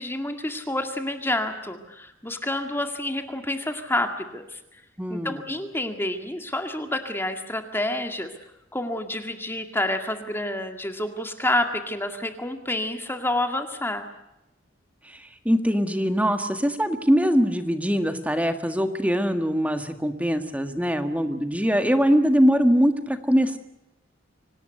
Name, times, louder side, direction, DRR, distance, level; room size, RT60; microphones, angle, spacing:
voice 1, 0.0-4.6 5.1-8.3 8.7-14.1, left 1 dB, 10° left, 6 dB, 2.0 m, -28 dB
voice 2, 5.0-5.4 15.0-23.6, equal, 5° right, 8 dB, 1.7 m, -22 dB
25.5 x 18.5 x 8.0 m, 0.89 s
head